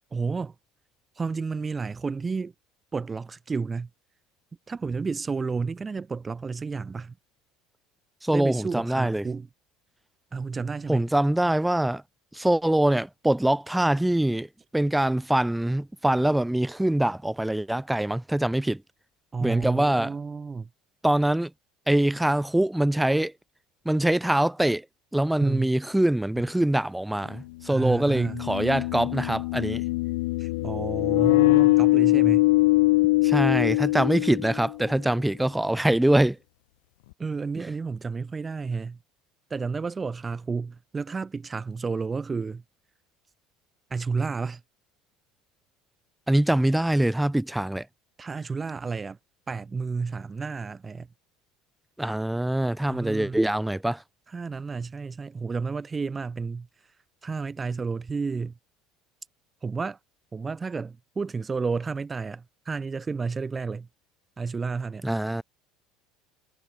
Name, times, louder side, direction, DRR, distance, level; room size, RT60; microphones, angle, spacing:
voice 1, 0.1-0.5 1.2-2.5 2.9-3.9 4.7-7.1 8.3-9.5 10.3-11.1 19.3-20.7 25.4-25.7 27.7-28.4 30.4-32.5 37.2-39.0 39.5-42.6 43.9-44.6 48.2-49.2 49.5-51.1 52.9-53.4 54.3-56.7 57.2-58.5 59.6-60.0 60.3-63.9 64.4-65.0, right 4 dB, 20° right, 4.0 m, -31 dB
voice 2, 8.2-9.2 10.9-12.0 12.3-14.5 14.7-18.8 19.4-20.1 21.0-21.5 21.9-23.3 23.8-24.8 25.1-29.8 33.2-36.4 46.3-47.8 52.0-54.0 65.0-65.4, right 1 dB, 5° right, 4.4 m, -24 dB
sound 1, 26.4-26.5 28.0-34.8, left 21 dB, 85° left, 1.9 m, -22 dB
supercardioid pair, 95°, 0 cm